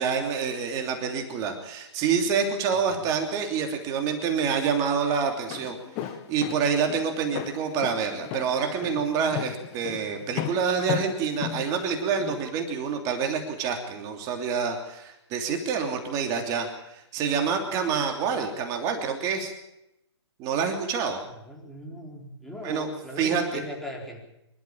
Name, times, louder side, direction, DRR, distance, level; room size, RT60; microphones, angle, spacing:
voice 1, 0.0-19.5 20.4-21.2 22.6-22.9 23.2-23.6, right 6 dB, 25° right, 4 dB, 3.1 m, -27 dB
voice 2, 2.7-3.0 18.3-18.4 21.4-24.2, left 1 dB, ahead, -1 dB, 4.4 m, -39 dB
Walk footsteps, 5.3-12.4, left 11 dB, 25° left, 1.8 m, -35 dB
26.0 x 13.0 x 8.7 m, 0.86 s
hypercardioid pair, 140°, 15 cm